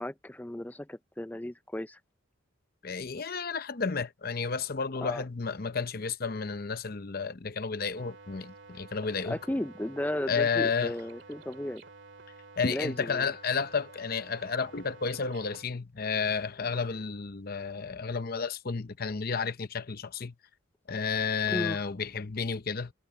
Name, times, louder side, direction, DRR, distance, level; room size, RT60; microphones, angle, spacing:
voice 1, 0.0-2.0 5.0-5.2 9.2-11.8 12.7-13.3 21.5-21.8, left 1 dB, 10° left, 0.4 m, -35 dB
voice 2, 2.8-9.4 10.3-10.9 12.6-20.3 20.9-22.9, left 5 dB, 45° left, 0.7 m, -31 dB
sound 1, 7.9-15.6, right 3 dB, 60° right, 2.3 m, -51 dB
head